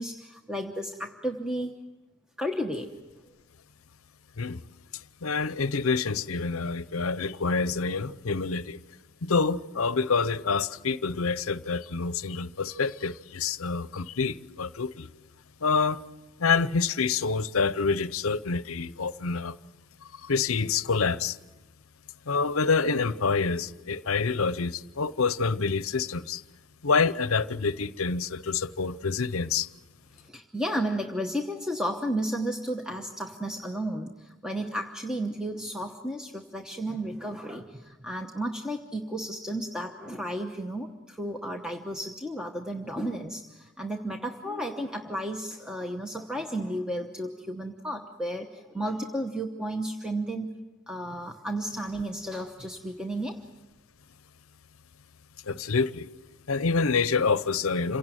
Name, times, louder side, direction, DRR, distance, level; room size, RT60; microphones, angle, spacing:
voice 1, 0.0-1.7 2.4-2.9 30.1-50.5 50.9-53.4, right 1 dB, 5° right, 0.9 m, -33 dB
voice 2, 4.9-8.8 9.2-15.1 15.6-16.0 16.4-19.6 20.1-21.4 22.3-26.4 26.8-29.7 55.5-56.1 56.5-58.0, left 4 dB, 70° left, 0.7 m, -27 dB
27.5 x 17.5 x 9.1 m
head